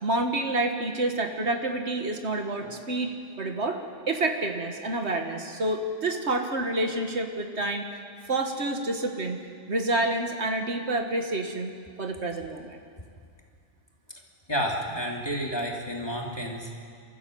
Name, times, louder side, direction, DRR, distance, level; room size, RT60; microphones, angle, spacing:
voice 1, 0.0-3.1 3.4-3.8 4.1-7.9 8.3-9.4 9.7-11.7 12.0-12.8, right 2 dB, 65° right, 4 dB, 1.8 m, -28 dB
voice 2, 14.5-16.8, equal, 20° left, -1 dB, 2.8 m, -30 dB
29.0 x 14.0 x 7.8 m, 2.2 s
omnidirectional pair, 1.2 m